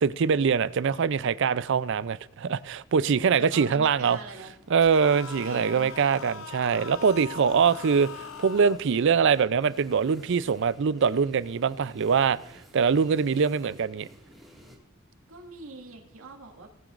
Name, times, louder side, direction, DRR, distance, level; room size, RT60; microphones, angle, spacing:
voice 1, 0.0-4.2 4.7-12.4 12.7-14.1, right 6 dB, 60° right, 0.4 m, -23 dB
voice 2, 3.1-4.5 5.4-5.9 15.3-16.7, right 2 dB, 85° right, 2.1 m, -43 dB
sound 1, 4.0-14.8, equal, ahead, 1.9 m, -54 dB
sound 2, 4.8-8.8, left 5 dB, 70° left, 0.7 m, -41 dB
19.0 x 9.1 x 2.5 m
head